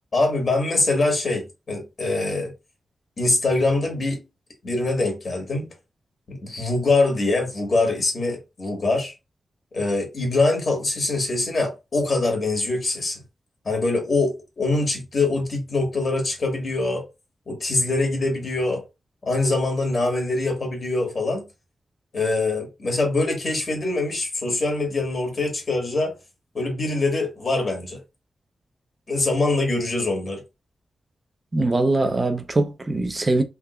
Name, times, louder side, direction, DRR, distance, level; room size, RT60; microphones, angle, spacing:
voice 1, 0.1-2.5 3.2-4.2 4.6-5.7 6.3-9.1 9.7-13.2 13.6-17.0 17.5-18.8 19.2-21.5 22.1-26.1 26.5-28.0 29.1-30.4, left 2 dB, 40° left, 1.4 m, -23 dB
voice 2, 31.5-33.4, right 2 dB, 25° right, 0.5 m, -22 dB
3.5 x 3.3 x 2.2 m
wide cardioid pair, 180°, 0 cm